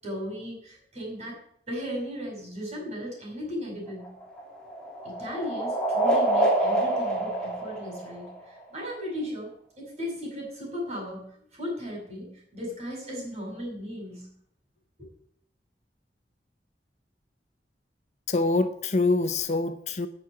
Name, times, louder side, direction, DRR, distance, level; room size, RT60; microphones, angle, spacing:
voice 1, 0.0-1.4 1.7-4.1 5.0-14.3 15.0-15.1, equal, 40° right, 6.1 m, -36 dB
sound 1, 3.9-8.6, right 1 dB, 5° left, 2.9 m, -27 dB
voice 2, 18.3-20.1, left 3 dB, 40° left, 0.6 m, -25 dB
10.5 x 6.6 x 8.5 m
head